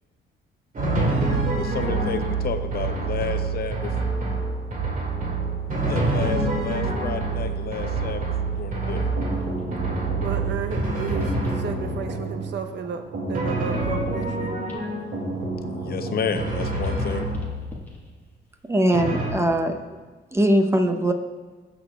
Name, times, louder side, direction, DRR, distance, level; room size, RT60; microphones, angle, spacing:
Drum, 0.7-12.1 13.3-15.3 16.3-17.8 18.9-19.3, right 3 dB, 45° right, 2.1 m, -27 dB
voice 1, 1.5-3.9 5.9-9.1 15.7-17.3, left 6 dB, 50° left, 8 dB, 0.7 m, -31 dB
sound 1, 6.9-9.6 9.9-12.1 12.6-16.2 16.4-19.2 19.8-20.0, equal, 10° left, 1.5 m, -41 dB
sound 2, 8.8-16.5, right 2 dB, 80° right, 2.1 m, -32 dB
voice 2, 10.2-14.5, right 6 dB, 60° right, 7 dB, 0.7 m, -33 dB
voice 3, 18.7-19.8 20.3-21.1, right 1 dB, 15° right, 5 dB, 0.8 m, -20 dB
15.5 x 6.2 x 2.3 m, 1.3 s
cardioid pair, 90°, 20 cm